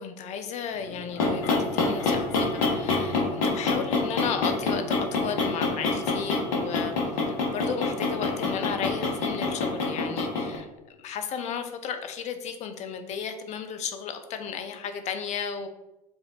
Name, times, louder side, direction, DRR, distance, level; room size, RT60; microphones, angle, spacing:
voice 1, 0.0-10.7 11.0-15.7, left 7 dB, 35° left, 7 dB, 0.5 m, -34 dB
sound 1, 0.9-10.6, left 3 dB, 60° left, 1.1 m, -27 dB
5.1 x 2.1 x 3.8 m, 0.98 s
figure-of-eight pair, 75°, 20 cm